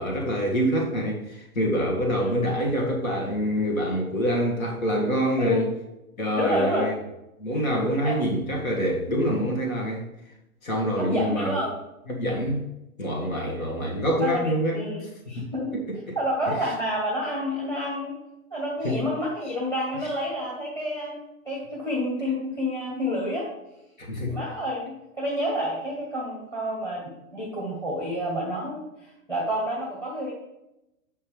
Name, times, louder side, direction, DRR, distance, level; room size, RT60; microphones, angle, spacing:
voice 1, 0.0-5.7 6.2-7.0 7.4-10.0 10.6-11.6 12.1-12.6 13.0-14.8 15.4-16.2 16.5-16.6 18.8-19.0 24.0-24.4, equal, 65° left, 0 dB, 2.0 m, -26 dB
voice 2, 2.1-2.5 5.4-5.6 6.4-6.8 8.0-8.2 11.0-11.7 14.2-15.7 16.1-18.1 18.5-23.5 24.2-30.3, equal, 5° left, -2 dB, 1.1 m, -29 dB
8.5 x 5.6 x 3.3 m, 0.92 s
figure-of-eight pair, 115°, 44 cm